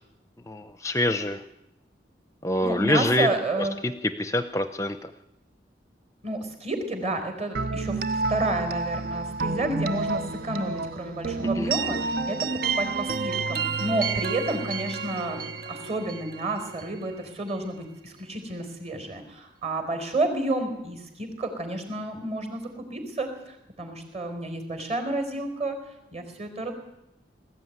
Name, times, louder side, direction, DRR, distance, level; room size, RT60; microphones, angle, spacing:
voice 1, 0.5-1.4 2.4-3.3 3.6-3.7 4.2-5.1 11.4-11.7, left 1 dB, 15° left, 10 dB, 0.7 m, -25 dB
voice 2, 2.6-3.8 6.2-8.0 8.3-12.4 12.8-15.4 15.7-25.8 26.1-26.7, right 2 dB, 35° right, 6 dB, 4.4 m, -30 dB
sound 1, 7.5-17.3, right 4 dB, 55° right, 0.9 m, -30 dB
20.5 x 14.5 x 9.5 m, 0.87 s
head